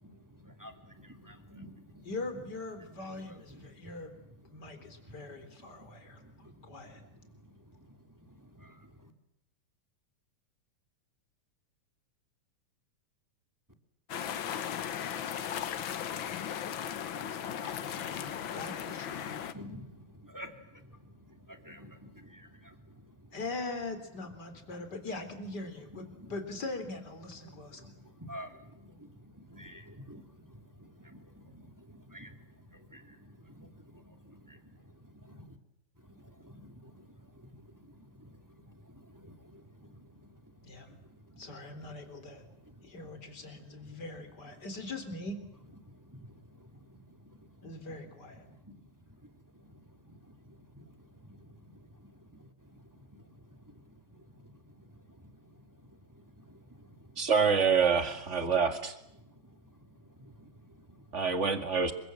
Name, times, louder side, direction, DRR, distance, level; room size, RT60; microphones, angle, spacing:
voice 1, 0.0-2.1 3.2-3.9 4.6-9.1 19.5-23.3 25.9-26.3 27.4-35.6 36.0-40.5 40.8-41.4 42.5-42.9 43.8-44.0 45.8-47.5 47.9-48.1 48.4-48.8 50.0-57.3 59.2-59.7 60.0-61.2, equal, 5° right, 2.1 m, -53 dB
voice 2, 2.0-7.0 17.3-19.4 23.3-27.9 40.6-41.0 41.4-42.4 42.8-45.4 47.6-48.4, left 2 dB, 30° left, 4.1 m, -42 dB
sound 1, 14.1-19.5, left 9 dB, 70° left, 1.1 m, -37 dB
voice 3, 57.2-59.0 61.1-61.9, right 5 dB, 25° right, 1.9 m, -26 dB
28.5 x 24.5 x 7.7 m
omnidirectional pair, 3.9 m